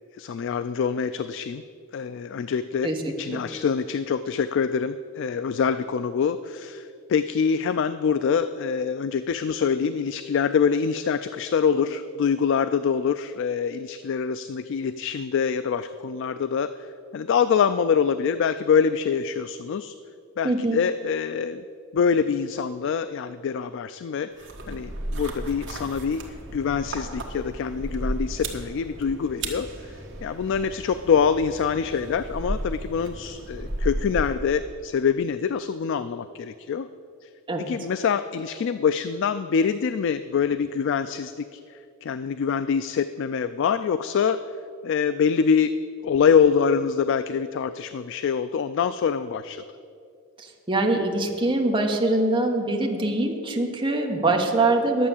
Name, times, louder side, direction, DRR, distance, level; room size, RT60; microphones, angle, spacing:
voice 1, 0.2-1.6 1.9-2.9 3.2-16.9 17.1-19.9 20.4-21.6 21.9-24.3 24.7-26.2 26.5-29.9 30.2-36.9 37.2-37.3 37.6-41.6 42.0-44.4 44.8-45.7 46.0-49.6, left 6 dB, 60° left, 12 dB, 0.3 m, -25 dB
voice 2, 2.8-3.4 20.4-20.8 37.5-37.7 50.4-55.1, right 2 dB, 25° right, 1 dB, 1.1 m, -24 dB
sound 1, 24.4-34.7, right 1 dB, 60° right, 1.4 m, -34 dB
11.0 x 7.3 x 7.1 m, 2.5 s
head